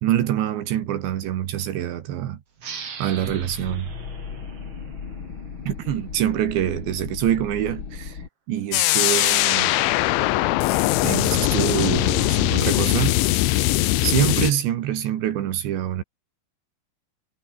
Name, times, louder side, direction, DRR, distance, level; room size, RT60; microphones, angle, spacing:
voice 1, 0.0-2.4 3.0-3.9 5.7-8.2 8.5-9.8 11.0-13.4 14.0-16.0, right 11 dB, 75° right, 4.0 m, -25 dB
sound 1, 2.6-5.8, right 6 dB, 35° right, 3.3 m, -41 dB
sound 2, 3.2-8.3, left 5 dB, 35° left, 2.4 m, -36 dB
sound 3, 8.7-14.5, left 17 dB, 85° left, 3.4 m, -20 dB
omnidirectional pair, 5.4 m